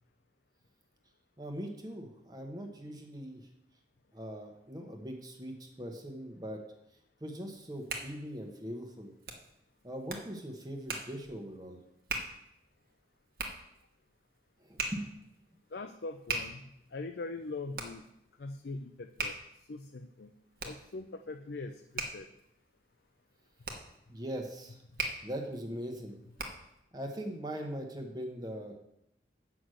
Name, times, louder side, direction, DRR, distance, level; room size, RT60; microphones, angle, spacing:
voice 1, 1.4-3.4 4.1-6.6 7.2-9.1 9.8-11.8 14.6-15.2 24.1-24.8 25.2-26.2 26.9-28.8, equal, 20° right, 3 dB, 1.1 m, -41 dB
Hands, 7.5-26.8, right 3 dB, 55° right, 1.2 m, -42 dB
voice 2, 15.7-16.6 16.9-18.0 18.4-19.4 19.7-20.3 20.6-21.7 22.1-22.3, left 3 dB, 75° left, 6 dB, 0.5 m, -41 dB
8.0 x 6.1 x 6.3 m, 0.81 s
head